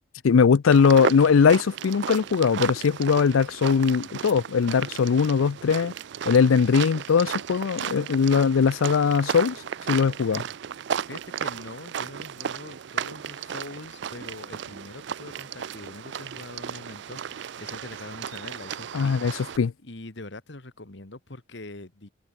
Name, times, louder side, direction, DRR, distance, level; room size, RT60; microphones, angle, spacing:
voice 1, 0.2-5.9 6.3-9.6 9.9-10.4 18.9-19.7, left 6 dB, 85° left, 0.4 m, -20 dB
sound 1, 0.7-19.6, right 8 dB, 60° right, 0.4 m, -34 dB
voice 2, 10.1-10.5 11.1-19.5 19.8-22.1, left 2 dB, 60° left, 1.8 m, -43 dB
head